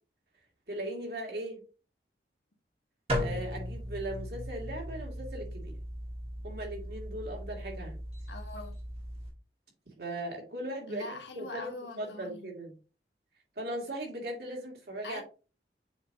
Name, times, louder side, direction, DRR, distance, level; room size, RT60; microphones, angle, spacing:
voice 1, 0.7-1.6 3.2-5.8 6.4-8.0 10.0-11.7 12.0-12.7 13.6-15.2, right 1 dB, 65° right, 2.3 m, -38 dB
sound 1, 3.1-9.3, equal, 35° right, 1.9 m, -37 dB
voice 2, 8.3-8.8 10.9-12.5 15.0-15.2, left 2 dB, 85° left, 1.6 m, -43 dB
7.3 x 4.7 x 2.7 m
head